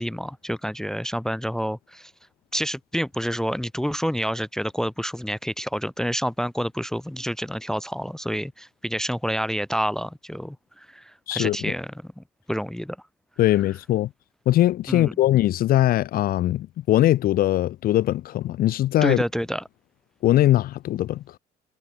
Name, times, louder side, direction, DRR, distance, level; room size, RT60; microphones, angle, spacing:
voice 1, 0.0-2.1 2.5-11.9 12.2-13.0 14.9-15.1 19.0-19.6, equal, 5° left, 0.5 m, -28 dB
voice 2, 11.3-11.7 13.4-14.1 14.5-19.2 20.2-21.4, left 14 dB, 60° left, 0.6 m, -21 dB
cardioid pair, 110°, 17 cm